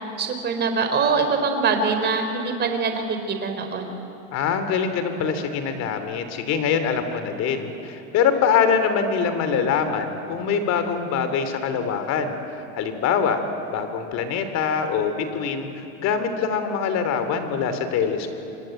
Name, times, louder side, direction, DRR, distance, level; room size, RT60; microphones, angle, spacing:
voice 1, 0.2-3.9, right 4 dB, 25° right, 5 dB, 3.8 m, -23 dB
voice 2, 4.3-12.4 12.7-13.4 13.7-18.3, left 6 dB, 45° left, 9 dB, 3.2 m, -24 dB
27.0 x 24.5 x 9.1 m, 2.9 s
supercardioid pair, 140°, 38 cm